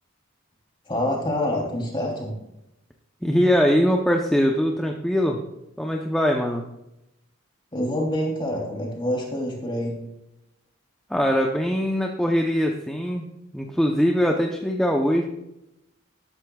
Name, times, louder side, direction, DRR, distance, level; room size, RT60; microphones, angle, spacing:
voice 1, 0.9-2.3 7.7-10.0, left 1 dB, 25° left, -1 dB, 3.1 m, -26 dB
voice 2, 3.2-5.4 5.8-6.7 11.1-13.3 13.5-15.2, equal, 5° left, 1 dB, 0.7 m, -22 dB
13.0 x 12.5 x 2.4 m, 0.88 s
head